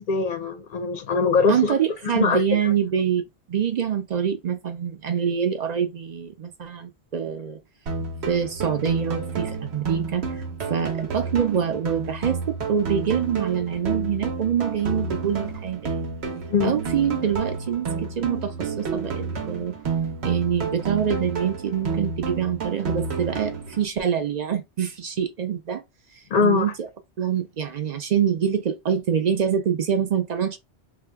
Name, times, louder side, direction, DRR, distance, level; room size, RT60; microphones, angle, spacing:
voice 1, 0.0-1.7 2.2-2.7 16.5-16.8 26.3-26.7, left 5 dB, 55° left, 0.6 m, -22 dB
voice 2, 1.5-3.2 3.5-7.6 8.3-10.4 10.7-16.1 16.6-17.9 18.2-19.8 20.2-25.8 26.4-26.9 27.2-30.6, right 8 dB, 55° right, 0.5 m, -25 dB
sound 1, 7.9-23.9, right 4 dB, 75° right, 1.1 m, -30 dB
2.8 x 2.2 x 3.3 m
omnidirectional pair, 1.1 m